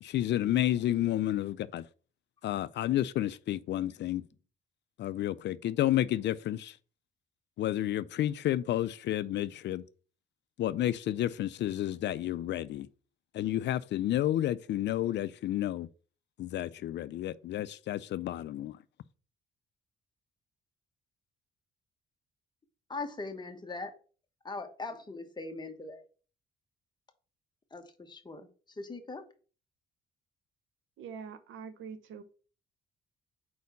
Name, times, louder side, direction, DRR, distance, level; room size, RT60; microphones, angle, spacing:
voice 1, 0.0-1.9 2.4-4.2 5.0-6.8 7.6-9.8 10.6-12.9 13.3-15.9 16.4-18.8, left 13 dB, 65° left, 0.4 m, -31 dB
voice 2, 22.9-23.9 24.4-26.0 27.7-29.2, left 3 dB, 20° left, 1.2 m, -40 dB
voice 3, 31.0-32.2, right 6 dB, 80° right, 0.8 m, -44 dB
4.7 x 4.2 x 5.3 m
cardioid pair, 90°, 20 cm